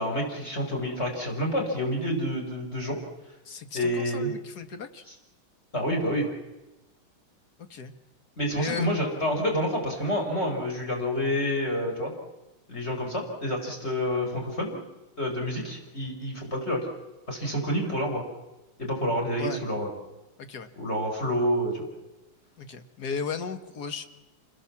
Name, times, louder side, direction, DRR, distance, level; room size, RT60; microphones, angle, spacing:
voice 1, 0.0-3.0 3.7-4.3 5.1-5.2 5.7-6.3 8.4-12.1 12.7-14.8 15.2-16.9 17.3-18.2 18.8-19.9 20.8-21.9, equal, 30° left, 2 dB, 5.3 m, -28 dB
voice 2, 3.5-5.0 7.7-7.9 8.6-8.9 19.4-19.6 20.4-20.7 22.6-24.1, left 5 dB, 50° left, 8 dB, 2.0 m, -35 dB
28.0 x 20.5 x 7.3 m, 1.0 s
omnidirectional pair, 2.3 m